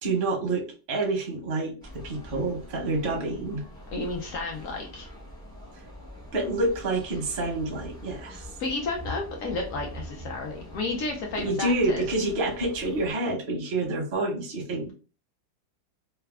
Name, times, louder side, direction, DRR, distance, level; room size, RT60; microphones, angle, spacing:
voice 1, 0.0-3.6 6.3-8.5 11.3-14.9, right 2 dB, 60° right, 0 dB, 0.5 m, -28 dB
sound 1, 1.8-13.1, equal, 5° left, 0.4 m, -44 dB
voice 2, 3.9-5.1 8.6-12.1, left 3 dB, 75° left, 1 dB, 0.7 m, -32 dB
3.3 x 2.0 x 2.2 m, 0.37 s
omnidirectional pair, 2.0 m